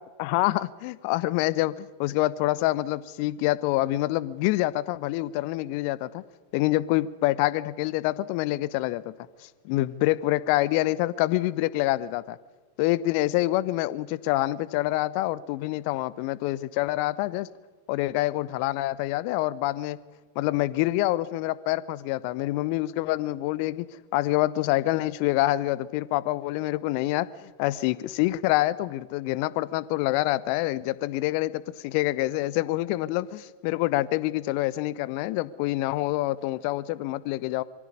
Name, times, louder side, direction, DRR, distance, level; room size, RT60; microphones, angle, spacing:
voice 1, 0.2-6.2 6.5-9.1 9.4-12.4 12.8-17.5 17.9-20.0 20.3-23.9 24.1-37.6, left 17 dB, 45° left, 20 dB, 0.8 m, -26 dB
22.5 x 16.0 x 9.5 m, 1.4 s
figure-of-eight pair, 90°, 0 cm